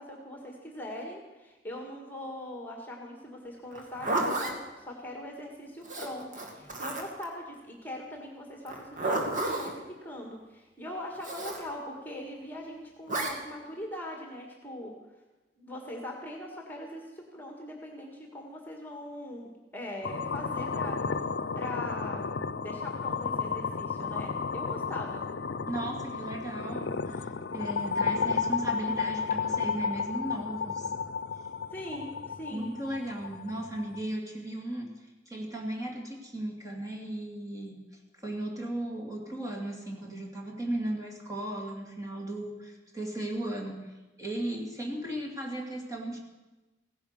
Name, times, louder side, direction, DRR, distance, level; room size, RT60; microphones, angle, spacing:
voice 1, 0.0-14.9 15.6-21.0 21.6-22.2 22.6-25.2 31.7-32.7, left 1 dB, 10° left, 1 dB, 1.8 m, -41 dB
Zipper (clothing), 3.7-4.5 5.8-7.2 8.7-9.7 11.2-11.6 13.1-13.3, right 2 dB, 45° right, 2.2 m, -31 dB
sound 1, 20.0-34.0, left 5 dB, 85° left, 0.6 m, -33 dB
voice 2, 25.7-30.9 32.5-37.8 38.2-43.9 44.2-46.2, right 1 dB, 20° right, 0 dB, 2.4 m, -36 dB
16.5 x 10.5 x 6.6 m, 1.1 s
head